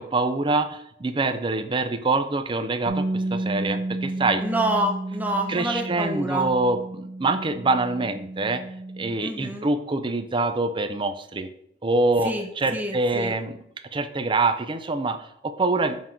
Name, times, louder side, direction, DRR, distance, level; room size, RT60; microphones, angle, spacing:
voice 1, 0.0-4.4 5.5-8.6 9.0-11.5 11.8-13.6 13.9-16.0, right 3 dB, 25° right, 9 dB, 0.5 m, -25 dB
Bass guitar, 2.9-9.1, right 2 dB, 70° right, 1.3 m, -32 dB
voice 2, 4.4-6.5 9.2-9.7 12.2-13.3, right 1 dB, 10° right, 3 dB, 0.9 m, -28 dB
7.2 x 3.8 x 5.8 m, 0.75 s
head